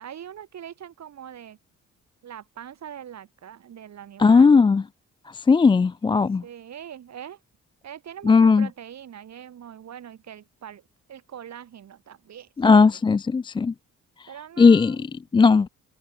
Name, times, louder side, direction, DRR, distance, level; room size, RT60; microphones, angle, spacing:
voice 1, 0.0-1.6 2.2-4.6 6.4-7.4 7.8-13.0 14.3-15.1, right 9 dB, 60° right, 7.5 m, -42 dB
voice 2, 4.2-4.8 5.3-6.4 8.3-8.7 12.6-13.7 14.6-15.1 15.3-15.7, left 4 dB, 15° left, 0.3 m, -17 dB
open air
cardioid pair, 90°, 30 cm